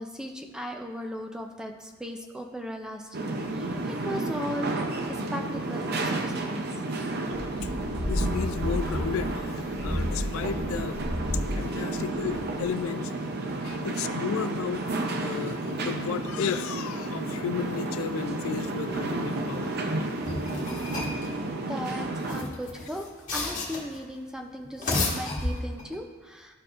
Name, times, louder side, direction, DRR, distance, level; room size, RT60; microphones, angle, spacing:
voice 1, 0.0-6.6 21.1-21.4 21.7-23.0 23.3-26.5, equal, 5° right, 3 dB, 0.4 m, -37 dB
sound 1, 3.1-22.4, right 2 dB, 50° right, 0.6 m, -32 dB
sound 2, 7.3-12.8, equal, 65° right, 1.7 m, -32 dB
voice 2, 8.1-11.0 11.5-20.5, left 7 dB, 75° left, 12 dB, 0.3 m, -34 dB
sound 3, 20.2-21.3 22.1-24.0 24.6-26.0, left 2 dB, 40° left, 1.5 m, -31 dB
12.5 x 4.6 x 2.5 m, 1.4 s
head